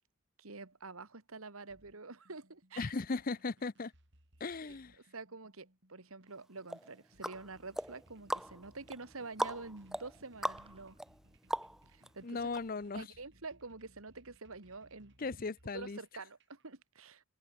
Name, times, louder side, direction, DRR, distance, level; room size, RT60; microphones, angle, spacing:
voice 1, 0.4-2.9 4.6-4.8 5.1-11.0 11.9-12.4 12.9-15.5 15.7-17.2, right 3 dB, 80° right, 2.0 m, -47 dB
sound 1, 1.7-16.6, right 1 dB, 55° right, 6.4 m, -67 dB
voice 2, 2.8-3.9 4.4-5.0 12.2-13.1 15.2-16.0, left 3 dB, 40° left, 0.6 m, -37 dB
sound 2, 6.7-12.1 12.5-12.6, right 1 dB, ahead, 0.6 m, -40 dB
sound 3, 10.6-11.1, right 2 dB, 25° right, 5.2 m, -61 dB
open air
head